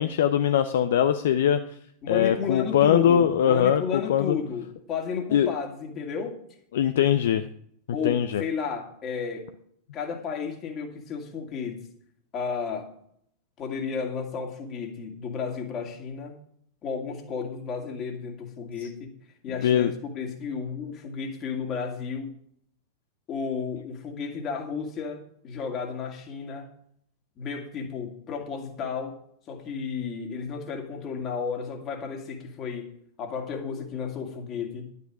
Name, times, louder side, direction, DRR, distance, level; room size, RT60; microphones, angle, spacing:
voice 1, 0.0-1.6 2.1-4.4 5.3-5.5 6.7-7.4 8.0-8.4 19.6-19.9, left 9 dB, 60° left, 10 dB, 0.6 m, -22 dB
voice 2, 2.0-6.4 7.9-9.5 9.9-11.9 12.3-12.9 13.6-16.3 16.8-19.1 19.4-22.3 23.3-26.7 27.4-29.2 29.5-34.9, left 6 dB, 30° left, 3 dB, 2.5 m, -33 dB
11.5 x 9.6 x 4.9 m, 0.67 s
figure-of-eight pair, 90°, 0 cm